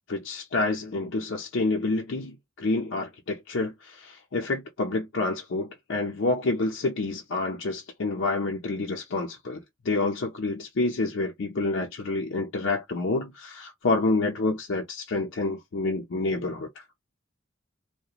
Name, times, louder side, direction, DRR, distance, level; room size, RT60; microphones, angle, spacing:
voice 1, 0.1-16.7, left 3 dB, 65° left, 0.6 m, -28 dB
2.8 x 2.1 x 2.4 m
head